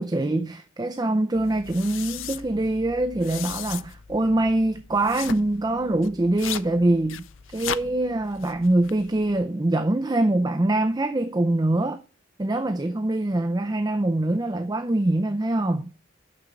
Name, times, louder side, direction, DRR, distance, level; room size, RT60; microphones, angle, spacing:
voice 1, 0.0-7.2 7.5-12.0 12.4-15.9, right 1 dB, 20° right, 0.5 m, -24 dB
sound 1, 1.3-9.4, left 9 dB, 90° left, 0.5 m, -38 dB
6.8 x 6.4 x 5.9 m
head